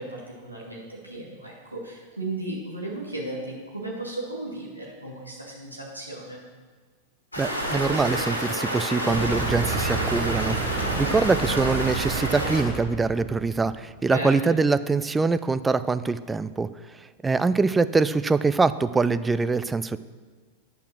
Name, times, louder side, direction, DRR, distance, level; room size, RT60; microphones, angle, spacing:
voice 1, 0.0-6.4 14.1-14.6, right 2 dB, 85° right, -4 dB, 2.2 m, -35 dB
Stream, 7.3-12.6, equal, 85° left, 1.9 m, -29 dB
voice 2, 7.4-16.7 17.2-20.0, right 4 dB, 10° right, 13 dB, 0.3 m, -24 dB
sound 1, 9.1-14.0, right 5 dB, 30° right, 1.0 m, -31 dB
10.0 x 5.6 x 6.2 m, 1.4 s
figure-of-eight pair, 90°, 0 cm